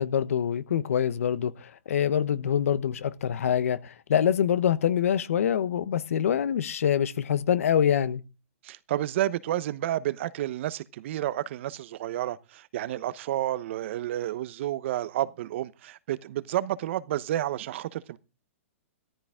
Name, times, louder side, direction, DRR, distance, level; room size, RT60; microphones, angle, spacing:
voice 1, 0.0-8.2, left 9 dB, 75° left, 1.1 m, -25 dB
voice 2, 8.6-18.2, right 13 dB, 55° right, 0.9 m, -30 dB
15.0 x 14.0 x 3.7 m
hypercardioid pair, 135°, 8 cm